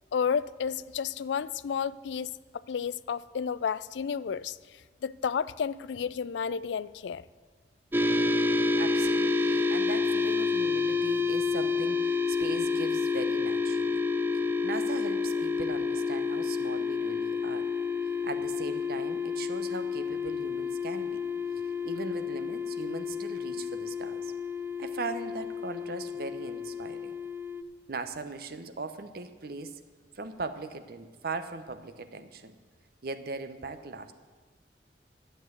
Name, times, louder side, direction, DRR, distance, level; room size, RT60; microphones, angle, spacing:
voice 1, 0.1-2.3 2.7-7.2, left 6 dB, 85° left, 0.4 m, -31 dB
sound 1, 7.9-27.6, left 4 dB, 10° right, 0.5 m, -29 dB
voice 2, 8.8-14.0 14.6-17.7 18.2-21.2 21.6-24.3 24.8-27.2 27.9-29.8 30.1-32.6 33.0-34.1, right 3 dB, 60° right, 0.8 m, -39 dB
12.0 x 8.0 x 7.8 m
head